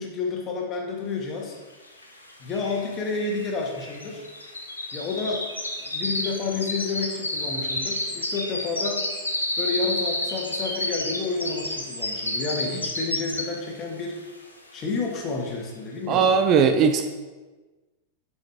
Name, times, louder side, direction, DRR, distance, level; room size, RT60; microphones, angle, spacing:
voice 1, 0.0-1.5 2.4-4.2 4.9-5.4 5.8-9.1 9.6-14.2 14.7-16.3, left 4 dB, 30° left, 0 dB, 1.7 m, -30 dB
sound 1, 2.0-2.1 2.3-13.8 14.2-14.5 14.9-15.0, left 1 dB, 80° left, 0.9 m, -30 dB
voice 2, 16.1-17.1, right 6 dB, 35° right, 8 dB, 0.5 m, -19 dB
8.0 x 6.3 x 3.5 m, 1.2 s
figure-of-eight pair, 90°, 0 cm